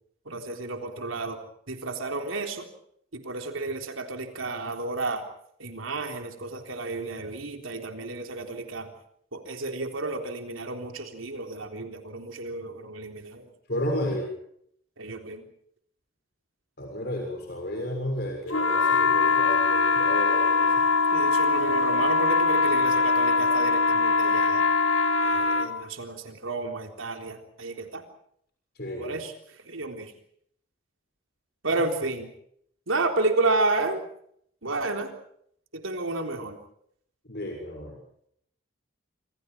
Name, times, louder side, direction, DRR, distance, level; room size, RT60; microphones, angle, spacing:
voice 1, 0.3-1.4 1.7-2.7 3.1-5.2 5.6-8.9 9.3-13.5 15.0-15.4 21.1-24.7 25.2-28.0 29.0-29.3 29.7-30.1 31.6-32.3 32.9-34.0 34.6-35.1 35.7-36.6, right 2 dB, 85° right, 4 dB, 3.7 m, -31 dB
voice 2, 13.7-14.3 16.8-20.7 28.8-29.2 37.3-37.9, equal, 50° left, 2 dB, 6.6 m, -32 dB
sound 1, 18.5-25.7, left 4 dB, 80° left, 2.9 m, -22 dB
28.0 x 27.0 x 4.6 m, 0.70 s
head